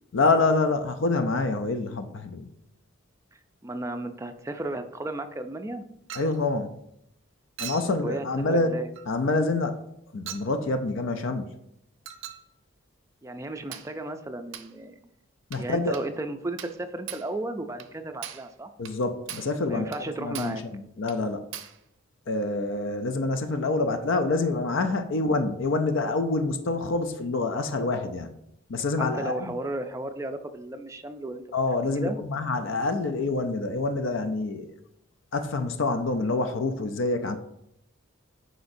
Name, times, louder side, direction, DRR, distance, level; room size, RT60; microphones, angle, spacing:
voice 1, 0.1-2.5 6.1-6.7 7.6-8.7 9.1-9.8 10.1-11.5 15.5-16.0 18.8-19.9 20.2-21.4 22.3-28.3 28.7-29.6 31.5-34.7 35.3-37.3, left 3 dB, 70° left, 8 dB, 0.5 m, -26 dB
voice 2, 3.6-5.9 8.0-8.9 13.2-15.0 15.6-18.7 19.7-20.6 29.0-31.4 31.9-32.2, right 2 dB, 15° right, 8 dB, 0.4 m, -34 dB
Chink clink, 6.1-6.4 7.6-7.9 8.9-9.1 10.3-10.5 12.0-12.5 13.7-13.9 14.5-14.7 15.5-15.7 15.9-16.1 16.6-16.8 17.1-17.3 17.8-17.9 18.2-18.5 18.8-19.0 19.3-19.6 19.9-20.1 20.3-20.6 21.1-21.2 21.5-21.8, right 10 dB, 70° right, 0.5 m, -40 dB
8.0 x 5.0 x 2.6 m, 0.77 s
head